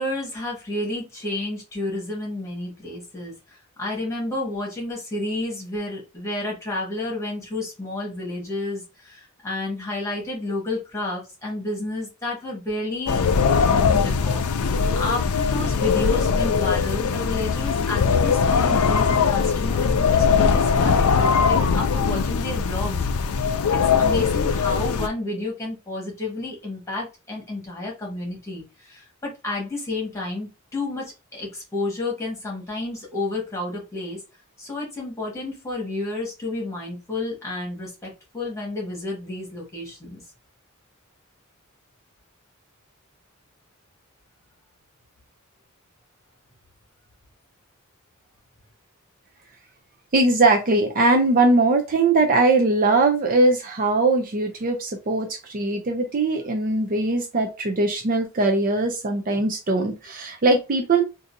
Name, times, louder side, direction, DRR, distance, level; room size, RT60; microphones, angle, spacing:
voice 1, 0.0-13.3 13.7-14.4 14.9-23.0 23.4-23.6 24.0-34.2 34.6-40.2, left 2 dB, 15° left, -2 dB, 1.5 m, -31 dB
sound 1, 13.1-25.1, left 5 dB, 90° left, 0.4 m, -21 dB
voice 2, 50.1-61.0, right 2 dB, 40° right, 3 dB, 0.5 m, -20 dB
3.8 x 2.6 x 2.6 m, 0.28 s
head